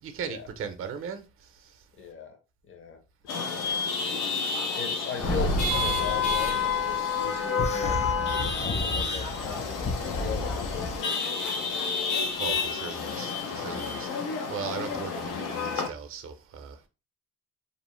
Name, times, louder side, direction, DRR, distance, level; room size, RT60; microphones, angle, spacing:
voice 1, 0.0-1.8 12.4-14.1 14.5-16.8, right 6 dB, 45° right, 0.6 m, -38 dB
voice 2, 2.0-2.4 2.6-3.0 3.4-3.9 4.8-10.9 11.3-11.9 14.0-14.2, left 6 dB, 40° left, 0.8 m, -39 dB
Chatter / Vehicle horn car horn honking / Traffic noise roadway noise, 3.3-15.9, left 5 dB, 85° left, 0.8 m, -30 dB
Thunder, 5.2-7.4, left 1 dB, 70° left, 1.3 m, -30 dB
sound 1, 7.6-11.0, left 3 dB, 25° left, 0.3 m, -33 dB
2.6 x 2.0 x 3.0 m
cardioid pair, 90°, 30 cm